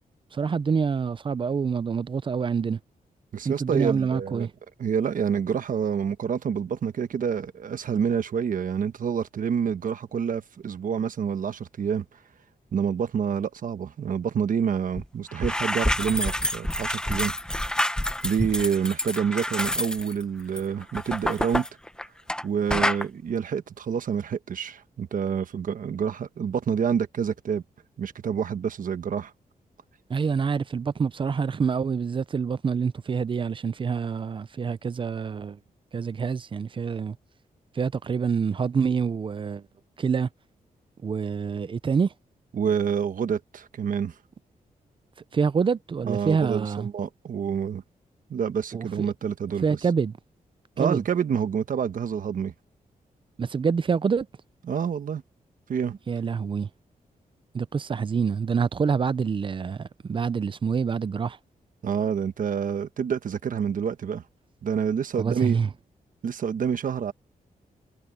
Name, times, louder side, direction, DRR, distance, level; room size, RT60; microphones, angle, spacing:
voice 1, 0.3-2.8 3.4-4.5 30.1-35.6 35.9-37.2 37.8-39.6 40.0-40.3 41.0-42.1 45.3-46.9 48.7-49.1 49.6-50.1 50.8-51.0 53.4-54.3 56.1-56.7 57.5-61.4 65.2-65.7, right 6 dB, 35° right, 0.5 m, -26 dB
voice 2, 3.3-4.5 4.8-12.0 12.7-17.3 18.2-21.7 22.4-27.6 28.0-29.3 42.5-44.1 46.0-47.8 48.3-49.8 50.8-52.5 54.7-55.2 55.7-55.9 61.8-64.2 64.6-65.6 66.2-67.1, right 7 dB, 65° right, 1.2 m, -27 dB
sound 1, 14.9-15.1 15.3-22.4 22.7-23.0, left 1 dB, 5° left, 0.9 m, -28 dB
wide cardioid pair, 120°, 15 cm